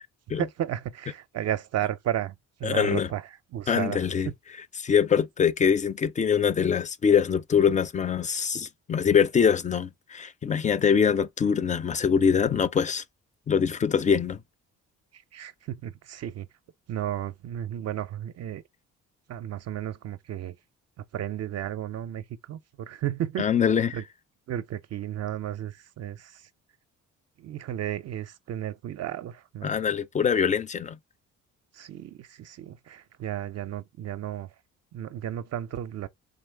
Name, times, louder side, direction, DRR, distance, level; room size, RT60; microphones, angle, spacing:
voice 1, 0.4-4.3 15.1-16.5 16.9-18.6 19.3-20.6 21.1-23.5 23.9-24.0 24.5-26.5 27.4-29.7 31.7-34.5 34.9-36.1, right 11 dB, 55° right, 0.5 m, -33 dB
voice 2, 2.6-3.1 3.7-4.3 4.8-13.0 13.5-14.4 23.4-24.0 29.6-31.0, left 7 dB, 25° left, 0.4 m, -23 dB
4.0 x 3.1 x 3.3 m
cardioid pair, 90°, 30 cm